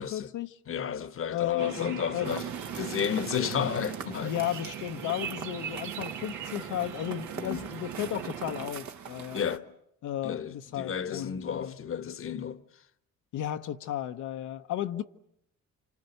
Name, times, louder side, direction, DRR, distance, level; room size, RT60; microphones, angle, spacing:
voice 1, 0.0-0.6 1.3-2.3 4.2-9.4 10.0-11.8 13.3-15.0, left 11 dB, 80° left, 0.9 m, -34 dB
voice 2, 0.7-2.4 2.7-4.3 7.3-7.7 9.3-9.6 10.2-12.6, left 8 dB, 45° left, 1.1 m, -32 dB
sound 1, 1.6-8.7, right 8 dB, 90° right, 2.0 m, -40 dB
sound 2, 2.2-9.6, right 7 dB, 70° right, 1.4 m, -42 dB
29.5 x 26.5 x 6.6 m
cardioid pair, 90°, 30 cm